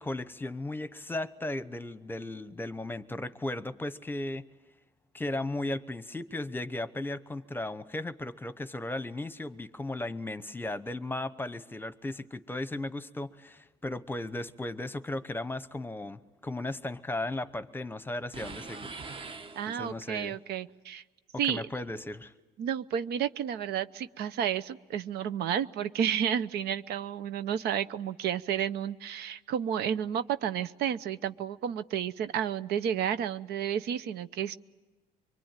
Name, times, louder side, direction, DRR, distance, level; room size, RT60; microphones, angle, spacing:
voice 1, 0.0-4.4 5.1-19.0 19.7-20.3 21.5-22.3, left 2 dB, 10° left, 13 dB, 1.0 m, -36 dB
sound 1, 18.3-20.2, right 4 dB, 30° right, 1.2 m, -43 dB
voice 2, 19.6-21.0 21.4-21.6 22.6-34.6, right 9 dB, 75° right, 13 dB, 0.9 m, -31 dB
24.5 x 23.5 x 9.1 m, 1.2 s
cardioid pair, 110°, 17 cm